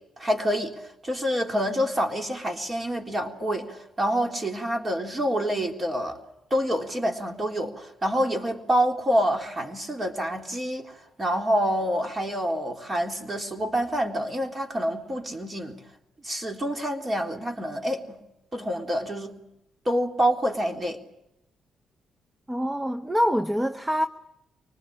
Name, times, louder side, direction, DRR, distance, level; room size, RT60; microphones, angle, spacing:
voice 1, 0.2-0.7 1.0-6.2 6.5-15.8 16.2-18.2 18.5-19.4 19.9-21.0, equal, 25° right, 3.7 m, -27 dB
voice 2, 22.5-24.1, equal, 10° right, 0.9 m, -25 dB
25.0 x 20.0 x 8.8 m
cardioid pair, 90°, 0 cm